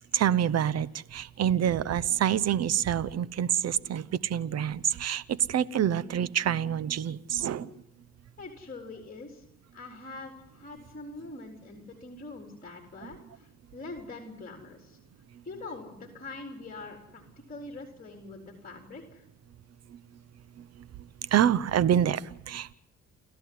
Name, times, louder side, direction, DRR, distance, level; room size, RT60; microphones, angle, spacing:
voice 1, 0.1-7.7 13.0-13.1 19.9-20.0 20.6-20.9 21.2-22.7, right 10 dB, 55° right, 18 dB, 0.9 m, -27 dB
voice 2, 8.4-9.4 9.7-15.0 15.4-19.2, left 3 dB, 30° left, 2 dB, 4.1 m, -44 dB
30.0 x 14.0 x 9.6 m, 0.79 s
cardioid pair, 90°, 30 cm